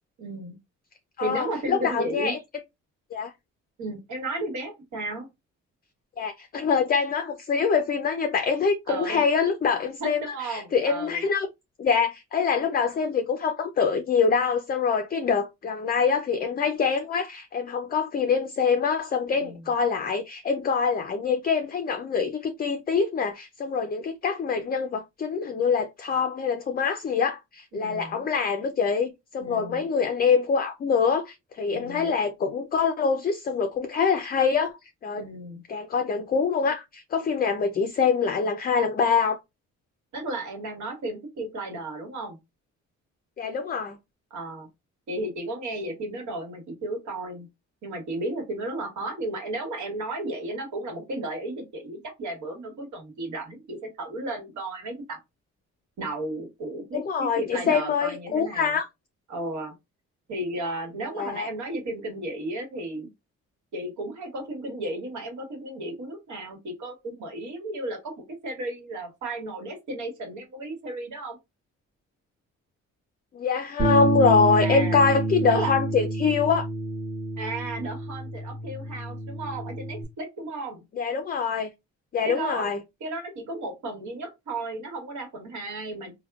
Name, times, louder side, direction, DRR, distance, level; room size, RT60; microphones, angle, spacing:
voice 1, 0.2-0.6 1.2-2.3 3.8-5.3 8.9-9.2 10.0-11.2 19.3-19.7 27.7-28.2 29.4-29.8 31.7-32.1 35.1-35.6 40.1-42.4 44.3-44.7 45.1-47.5 47.8-55.2 56.0-58.7 59.3-59.7 60.3-63.1 63.7-71.4 74.6-75.0 75.5-75.7 77.4-80.8 82.2-82.7 83.0-86.1, right 2 dB, 70° right, 1.4 m, -34 dB
voice 2, 1.2-2.4 3.1-3.3 6.2-10.2 10.5-11.5 11.8-34.8 35.0-35.3 35.7-39.4 43.4-44.0 56.9-58.9 61.2-61.5 73.3-76.7 81.0-81.7 82.1-82.8, left 5 dB, 30° left, 0.4 m, -25 dB
Bass guitar, 73.8-80.0, right 3 dB, 25° right, 1.0 m, -28 dB
3.4 x 2.2 x 2.3 m
cardioid pair, 90°, 30 cm